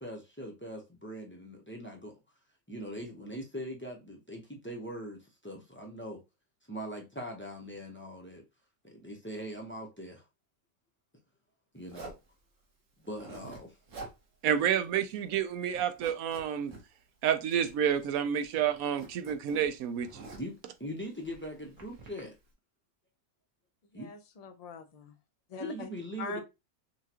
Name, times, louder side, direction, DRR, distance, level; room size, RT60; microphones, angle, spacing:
voice 1, 0.0-2.1 2.7-6.2 6.7-8.4 8.8-10.2 11.7-12.1 13.0-13.8 20.4-20.5 20.8-22.3 23.9-24.1 25.6-26.4, equal, 10° left, 0.7 m, -41 dB
Zipper (clothing), 11.9-12.3 13.0-13.6 13.9-14.2 14.5-14.6 15.0-15.4 15.7-16.8 17.5-18.2 18.4-20.6 21.2-22.2, right 3 dB, 65° right, 1.5 m, -48 dB
voice 2, 14.4-16.7 17.2-20.3, right 9 dB, 80° right, 1.0 m, -29 dB
voice 3, 23.9-25.2 25.5-25.9 26.2-26.4, left 4 dB, 45° left, 0.5 m, -42 dB
5.6 x 2.3 x 2.9 m
omnidirectional pair, 1.5 m